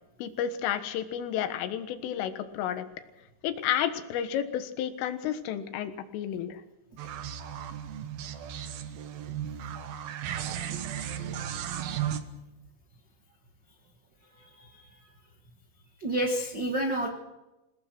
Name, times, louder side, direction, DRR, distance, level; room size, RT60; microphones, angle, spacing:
voice 1, 0.2-2.9 3.4-6.6, left 10 dB, 85° left, 9 dB, 4.0 m, -31 dB
sound 1, 7.0-12.2, right 9 dB, 65° right, 2.5 m, -35 dB
voice 2, 16.0-17.1, right 1 dB, 85° right, 2 dB, 0.9 m, -29 dB
27.5 x 17.5 x 6.2 m, 1.0 s
omnidirectional pair, 5.6 m